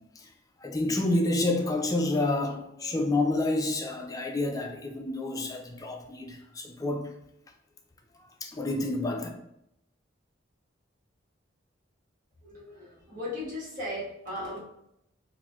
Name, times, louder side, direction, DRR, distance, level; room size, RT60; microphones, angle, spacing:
voice 1, 0.6-7.1 8.4-9.3, left 2 dB, 20° left, 3 dB, 0.4 m, -29 dB
voice 2, 12.4-14.6, left 1 dB, 45° right, -7 dB, 1.2 m, -37 dB
4.2 x 2.1 x 2.3 m, 0.78 s
head